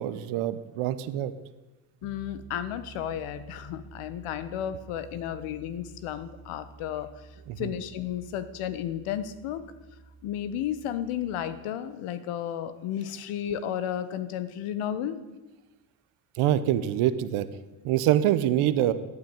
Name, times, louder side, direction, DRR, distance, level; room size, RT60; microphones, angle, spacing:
voice 1, 0.0-1.3 7.5-7.7 16.4-17.5 17.8-18.9, right 12 dB, 75° right, 13 dB, 1.0 m, -25 dB
voice 2, 2.0-7.1 7.6-9.6 10.2-15.2, left 10 dB, 80° left, 13 dB, 1.3 m, -33 dB
Piano, 2.0-11.6, right 4 dB, 30° right, 1.5 m, -50 dB
14.5 x 9.0 x 9.2 m, 1.1 s
supercardioid pair, 55°, 50 cm